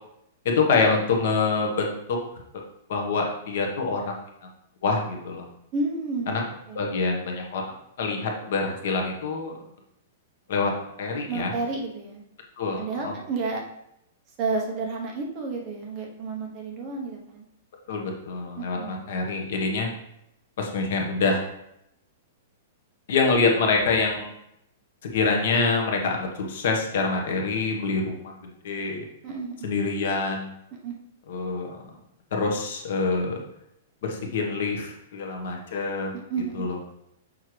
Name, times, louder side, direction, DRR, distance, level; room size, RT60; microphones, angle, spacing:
voice 1, 0.4-2.2 2.5-2.6 2.9-4.2 4.8-5.5 6.3-6.4 6.7-7.6 8.0-9.6 10.5-10.7 11.0-11.5 12.6-13.1 17.9-19.9 20.6-21.4 23.1-24.3 25.0-29.0 29.6-30.5 31.3-32.0 32.3-33.4 34.0-36.1 36.5-36.8, left 4 dB, 55° left, 1 dB, 1.3 m, -26 dB
voice 2, 5.7-6.8 11.3-12.2 12.8-13.6 14.4-17.5 18.6-19.0 29.2-29.6 30.8-30.9 36.3-36.7, right 3 dB, 25° right, 0 dB, 0.9 m, -31 dB
6.4 x 5.5 x 3.2 m, 0.79 s
supercardioid pair, 175°, 0 cm